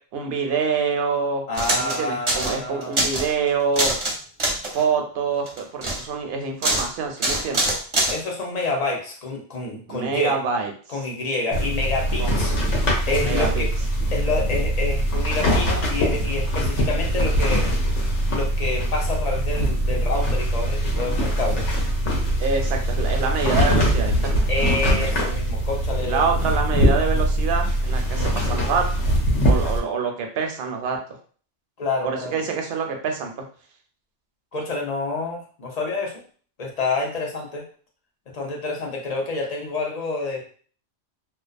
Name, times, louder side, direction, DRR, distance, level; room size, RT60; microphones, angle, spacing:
voice 1, 0.1-1.4 1.8-3.9 4.7-7.7 9.9-10.7 12.2-12.7 13.2-13.6 22.4-24.5 26.0-28.9 29.4-31.0 32.0-33.4, right 5 dB, 65° right, 3 dB, 0.7 m, -26 dB
voice 2, 1.5-3.1 8.1-10.4 10.9-12.5 13.1-13.7 14.1-17.7 18.3-21.7 24.5-26.3 31.8-32.3 34.5-36.1 36.6-37.7 38.3-40.5, left 3 dB, 50° left, 0 dB, 0.5 m, -28 dB
sound 1, 1.5-2.0 2.3-2.6 2.8-3.3 3.7-4.1 4.4-4.8 5.5-6.0 6.6-6.9 7.2-8.2, right 1 dB, 35° right, 0.6 m, -23 dB
sound 2, 11.5-29.8, equal, 90° left, 1.0 m, -22 dB
2.3 x 2.2 x 2.5 m, 0.44 s
omnidirectional pair, 1.2 m